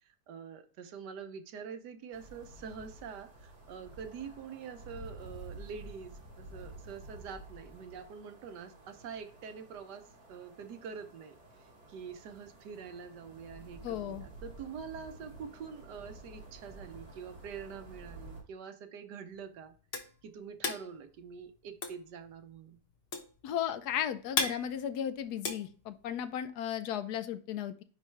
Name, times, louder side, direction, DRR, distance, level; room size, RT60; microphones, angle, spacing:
voice 1, 0.3-11.4 11.9-19.7 20.2-22.8, right 6 dB, 75° right, 8 dB, 1.4 m, -45 dB
sound 1, 2.1-18.4, right 2 dB, 60° right, 2.4 m, -51 dB
voice 2, 13.8-14.2 23.4-27.8, left 9 dB, 75° left, 11 dB, 1.1 m, -35 dB
sound 2, 19.3-26.5, left 4 dB, 45° left, 0.8 m, -37 dB
9.9 x 3.4 x 3.2 m, 0.41 s
omnidirectional pair, 1.8 m